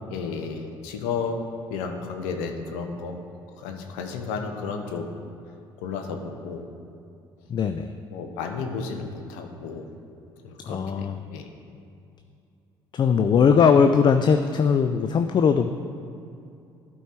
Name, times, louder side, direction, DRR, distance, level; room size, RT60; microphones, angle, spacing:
voice 1, 0.1-1.4 1.7-3.2 3.6-5.1 5.8-6.7 8.1-9.9 10.4-11.5, left 5 dB, 70° left, 4 dB, 0.8 m, -32 dB
voice 2, 7.5-7.9 10.6-11.2 12.9-15.7, left 6 dB, 35° left, 8 dB, 0.4 m, -20 dB
12.0 x 4.6 x 4.4 m, 2.6 s
hypercardioid pair, 55°, 12 cm